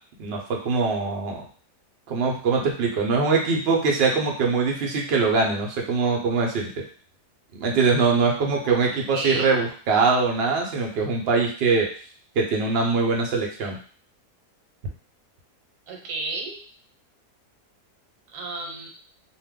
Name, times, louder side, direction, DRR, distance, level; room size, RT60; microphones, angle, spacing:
voice 1, 0.2-1.4 2.1-6.7 7.6-11.9 12.4-13.8, right 4 dB, 60° right, 0 dB, 0.7 m, -22 dB
voice 2, 9.1-9.5 15.9-16.6 18.3-18.9, right 3 dB, 75° right, 2 dB, 1.2 m, -31 dB
2.5 x 2.2 x 3.5 m, 0.42 s
omnidirectional pair, 1.7 m